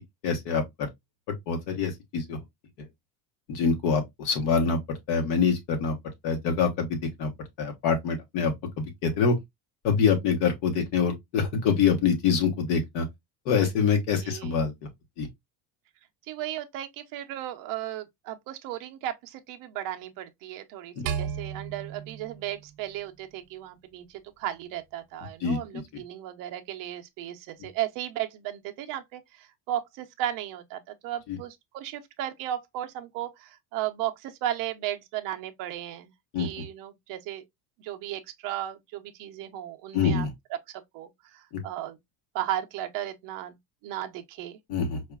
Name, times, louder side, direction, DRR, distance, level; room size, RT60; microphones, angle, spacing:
voice 1, 0.2-0.9 1.3-2.4 3.5-6.0 6.2-7.3 7.6-9.4 9.8-13.0 13.4-14.7 15.2-15.3 21.0-21.1 25.4-25.8 31.3-31.4 36.3-36.5 39.9-40.3 41.5-41.6 44.7-45.0, left 5 dB, 75° left, 1.2 m, -25 dB
voice 2, 14.2-14.6 16.3-36.1 36.4-37.4 37.8-40.6 40.9-42.0 42.3-43.6 43.8-44.6, right 12 dB, 50° right, 0.6 m, -35 dB
sound 1, 21.1-23.4, right 8 dB, 90° right, 0.7 m, -35 dB
4.6 x 2.4 x 2.2 m
cardioid pair, 175°, 42 cm